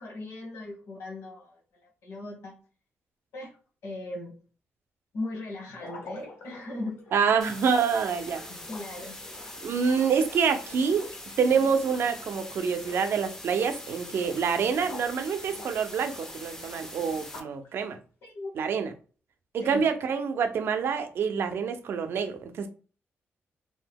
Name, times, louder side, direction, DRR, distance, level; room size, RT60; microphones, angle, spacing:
voice 1, 0.0-1.6 2.0-2.5 3.3-3.5 3.8-4.3 5.1-7.0 7.9-8.1 8.5-9.2 18.2-18.5 19.6-19.8, left 2 dB, 70° left, 1.0 m, -38 dB
sound 1, 5.7-12.4 12.7-13.2 13.5-15.1 15.5-17.7, left 2 dB, 85° left, 1.5 m, -48 dB
voice 2, 7.1-8.4 9.6-11.1 11.4-18.0 18.6-18.9 19.5-22.7, right 6 dB, 55° right, 0.4 m, -26 dB
sound 2, 7.4-17.4, left 1 dB, 10° left, 0.4 m, -43 dB
2.7 x 2.1 x 3.4 m
wide cardioid pair, 175°, 5 cm